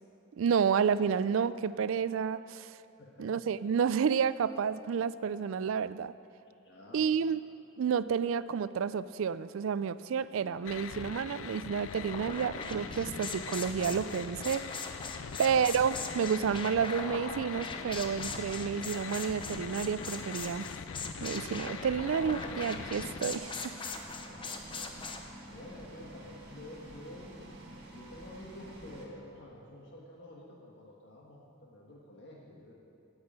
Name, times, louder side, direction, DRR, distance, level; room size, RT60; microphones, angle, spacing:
voice 1, 0.4-2.7 3.2-6.1 6.9-7.4 7.8-14.6 15.4-20.7 21.2-23.7, right 7 dB, 75° right, 16 dB, 0.4 m, -30 dB
voice 2, 3.0-3.3 6.6-7.0 15.2-15.5 24.0-32.7, left 1 dB, 60° left, -3 dB, 1.4 m, -50 dB
sound 1, 10.6-23.2, left 7 dB, 75° left, 0.4 m, -42 dB
sound 2, 11.9-25.3, left 3 dB, 25° left, 0.7 m, -41 dB
sound 3, 22.0-29.1, right 1 dB, 50° right, 2.0 m, -50 dB
9.5 x 7.9 x 8.7 m, 2.7 s
head